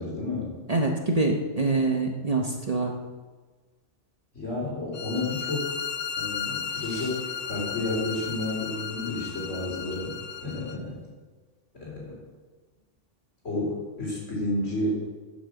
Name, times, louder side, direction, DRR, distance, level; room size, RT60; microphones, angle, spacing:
voice 1, 0.0-0.5 4.3-5.8 6.2-10.2 10.4-11.0 11.7-12.2 13.4-14.9, left 2 dB, 80° left, -4 dB, 4.2 m, -31 dB
voice 2, 0.7-2.9 6.9-7.0, right 3 dB, 35° right, 2 dB, 0.9 m, -25 dB
sound 1, 4.9-10.8, left 7 dB, 50° left, 0.5 m, -35 dB
9.4 x 6.2 x 7.0 m, 1.3 s
omnidirectional pair, 1.3 m